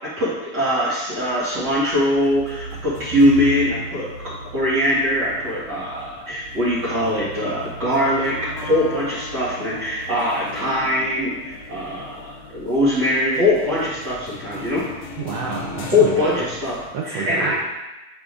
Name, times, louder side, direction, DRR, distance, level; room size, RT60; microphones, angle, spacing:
voice 1, 0.0-14.8 15.9-16.7 17.0-17.6, left 1 dB, 45° right, -9 dB, 1.5 m, -22 dB
sound 1, 1.1-16.9, left 1 dB, 85° left, 1.1 m, -37 dB
voice 2, 15.2-16.4 16.9-17.6, right 5 dB, 75° right, -2 dB, 1.4 m, -28 dB
8.4 x 5.0 x 2.4 m, 1.1 s
omnidirectional pair, 3.5 m